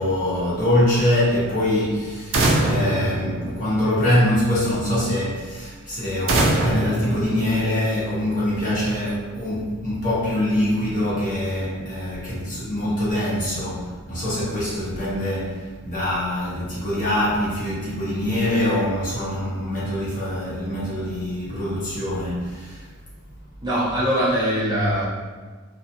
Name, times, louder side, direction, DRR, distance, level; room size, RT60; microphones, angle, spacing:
voice 1, 0.0-2.4 2.6-22.9, left 1 dB, 40° left, -9 dB, 1.0 m, -24 dB
sound 1, 2.3-4.1 6.3-8.0, right 2 dB, 65° right, 0.4 m, -23 dB
voice 2, 23.6-25.1, equal, 20° right, -9 dB, 0.6 m, -22 dB
2.6 x 2.2 x 2.6 m, 1.4 s
head